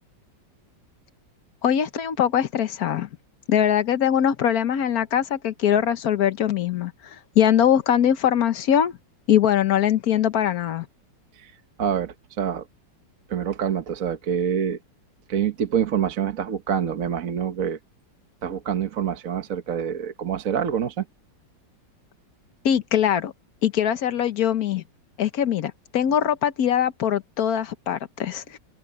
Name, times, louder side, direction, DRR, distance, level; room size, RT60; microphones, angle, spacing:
voice 1, 1.6-3.1 3.5-8.9 9.3-10.9 22.6-23.3 23.6-24.8 25.2-28.6, left 9 dB, 60° left, 1.4 m, -22 dB
voice 2, 11.8-12.6 13.3-14.8 15.3-17.8 18.4-21.0, right 8 dB, 50° right, 1.4 m, -26 dB
open air
omnidirectional pair, 2.0 m